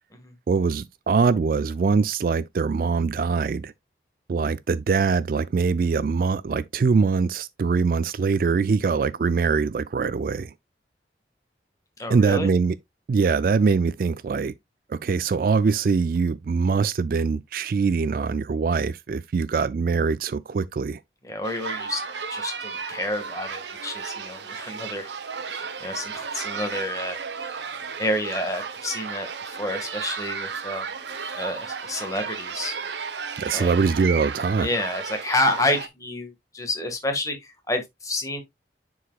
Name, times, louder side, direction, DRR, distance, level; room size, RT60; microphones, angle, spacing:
voice 1, 0.5-3.7 4.3-10.5 12.1-12.8 13.1-14.5 14.9-21.0 33.4-34.7, right 5 dB, 50° right, 0.3 m, -23 dB
voice 2, 12.0-12.5 21.2-22.0 22.3-25.1 25.5-27.2 27.4-27.7 28.0-30.9 31.3-32.7 33.5-33.7 34.6-38.4, left 1 dB, 20° left, 1.7 m, -29 dB
sound 1, 21.4-35.9, right 6 dB, 80° right, 0.9 m, -34 dB
9.9 x 4.7 x 2.3 m
head